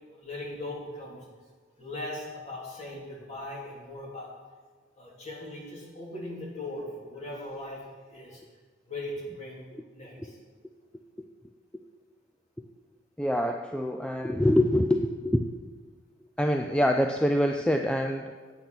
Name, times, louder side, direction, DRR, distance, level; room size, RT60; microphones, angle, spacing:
voice 1, 0.2-1.2 1.8-4.3 5.0-7.8 8.1-8.4 8.9-9.6 9.9-10.4, left 1 dB, 35° left, -4 dB, 2.9 m, -39 dB
voice 2, 13.2-15.5 16.4-18.3, left 1 dB, 5° left, 4 dB, 0.4 m, -25 dB
8.5 x 8.3 x 6.0 m, 1.5 s
head